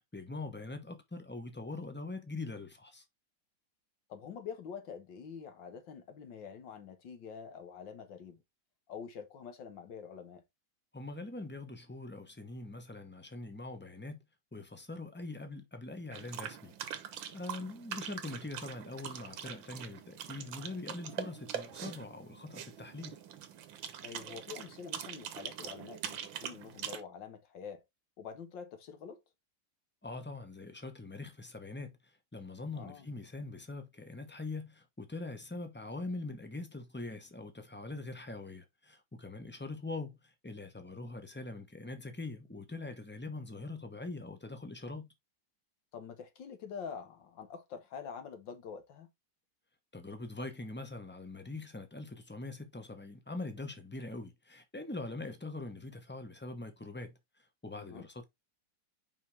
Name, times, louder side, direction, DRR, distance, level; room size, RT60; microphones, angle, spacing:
voice 1, 0.0-3.0 10.9-14.2 14.5-16.7 17.3-23.2 30.0-45.1 49.9-57.1 57.6-58.2, left 2 dB, 10° left, 0.5 m, -43 dB
voice 2, 4.1-8.4 8.9-10.4 24.0-27.8 28.2-29.2 32.7-33.1 45.9-49.1 57.8-58.1, left 6 dB, 75° left, 1.9 m, -46 dB
sound 1, 16.1-27.0, right 9 dB, 85° right, 1.7 m, -43 dB
5.6 x 5.2 x 3.4 m
omnidirectional pair, 2.0 m